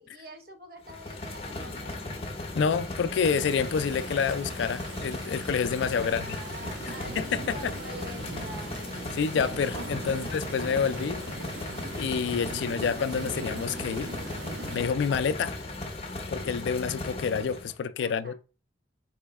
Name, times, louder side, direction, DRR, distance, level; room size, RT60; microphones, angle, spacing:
voice 1, 0.0-2.0 6.0-9.0 10.0-10.2 18.0-18.3, equal, 50° right, 1.0 m, -46 dB
sound 1, 0.8-17.7, left 2 dB, 30° left, 0.7 m, -37 dB
voice 2, 2.5-6.4 7.2-7.7 9.1-11.2 12.0-14.1 14.7-15.6 16.3-18.3, left 6 dB, 75° left, 0.3 m, -28 dB
sound 2, 3.2-14.8, right 3 dB, 85° right, 0.7 m, -41 dB
4.3 x 3.1 x 3.5 m
head